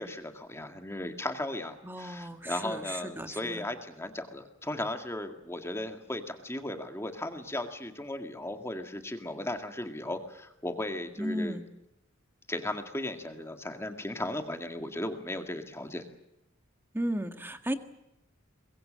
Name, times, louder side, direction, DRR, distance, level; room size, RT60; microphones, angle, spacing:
voice 1, 0.0-11.6 12.5-16.0, left 1 dB, 15° left, 6 dB, 1.9 m, -36 dB
voice 2, 1.8-3.6 11.2-11.6 16.9-17.7, equal, 10° right, 8 dB, 1.6 m, -34 dB
23.5 x 22.0 x 7.6 m, 0.87 s
head